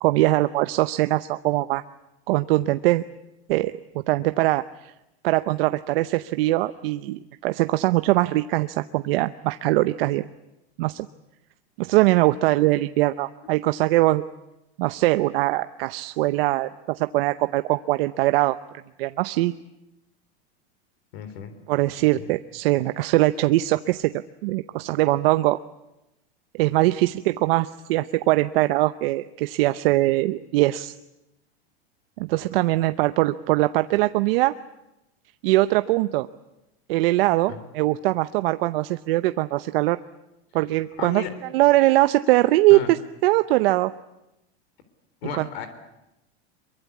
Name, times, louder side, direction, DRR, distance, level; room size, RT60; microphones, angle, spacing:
voice 1, 0.0-1.8 2.3-3.0 3.5-3.7 4.1-4.9 5.2-10.3 10.8-11.1 11.8-14.2 14.8-18.6 19.0-19.5 21.7-24.1 24.4-25.6 26.5-30.9 32.2-34.5 35.4-36.3 36.9-40.0 40.5-41.2 41.5-43.0 43.2-43.9 45.4-45.5, right 18 dB, 60° right, 11 dB, 0.8 m, -21 dB
voice 2, 21.1-21.5 22.0-22.3 37.5-37.7 41.0-41.3 42.7-42.9 45.2-45.7, left 6 dB, 70° left, 10 dB, 4.0 m, -34 dB
23.5 x 23.0 x 8.4 m, 0.94 s
supercardioid pair, 145°, 32 cm